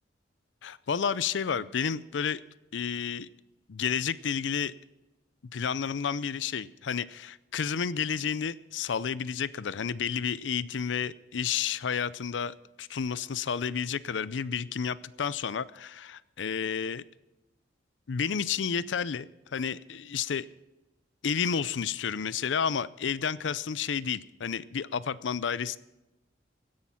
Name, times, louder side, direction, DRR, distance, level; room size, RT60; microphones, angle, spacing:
voice 1, 0.6-2.4 2.7-3.3 3.7-4.7 5.5-17.0 18.1-20.5 21.2-25.8, left 7 dB, 85° left, 18 dB, 0.5 m, -31 dB
16.5 x 10.5 x 5.7 m, 0.98 s
head